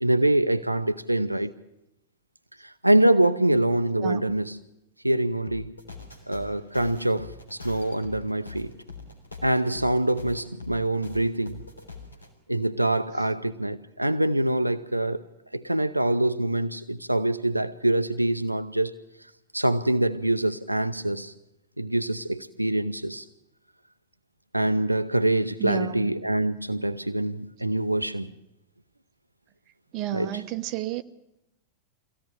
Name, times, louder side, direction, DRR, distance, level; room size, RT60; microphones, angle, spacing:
voice 1, 0.0-1.5 2.6-4.6 5.0-5.8 6.3-8.7 9.4-11.6 12.5-15.2 15.5-19.0 19.5-21.3 21.8-23.2 24.5-28.3 30.1-30.3, right 1 dB, 90° right, 0.8 m, -25 dB
voice 2, 4.0-4.4 25.6-26.1 29.9-31.0, right 12 dB, 40° right, 1.1 m, -31 dB
sound 1, 5.5-12.3, left 4 dB, 85° left, 3.7 m, -43 dB
24.0 x 16.5 x 8.8 m
figure-of-eight pair, 90°, 0 cm